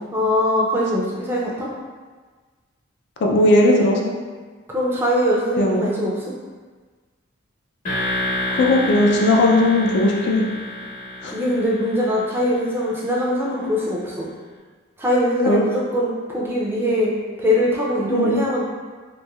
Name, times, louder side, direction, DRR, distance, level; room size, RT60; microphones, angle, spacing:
voice 1, 0.1-1.7 4.7-6.3 11.3-14.3 15.0-17.1 17.4-18.6, equal, 10° right, -5 dB, 0.4 m, -22 dB
voice 2, 3.2-4.1 5.6-5.9 8.5-10.5 11.2-11.3 15.5-15.6 18.1-18.4, left 1 dB, 60° left, 0 dB, 0.4 m, -17 dB
sound 1, 7.8-12.8, left 1 dB, 40° left, 0.9 m, -29 dB
3.0 x 2.5 x 2.3 m, 1.4 s
head